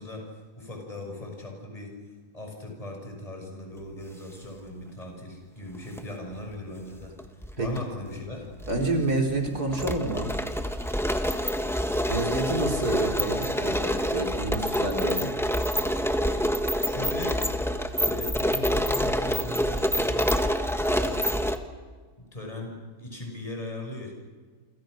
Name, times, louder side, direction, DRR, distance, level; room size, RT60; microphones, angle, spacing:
voice 1, 0.0-2.0 2.3-7.1 7.6-8.5 16.8-17.5 18.0-20.4 20.9-21.3 22.2-24.1, left 2 dB, 20° left, 1 dB, 6.3 m, -38 dB
sound 1, 5.7-6.0 7.0-7.8 8.1-8.2 8.6-21.6, equal, ahead, 1.4 m, -27 dB
voice 2, 8.7-10.3 12.1-15.3, right 2 dB, 75° right, 2 dB, 4.5 m, -28 dB
29.5 x 25.5 x 6.5 m, 1.5 s
omnidirectional pair, 1.7 m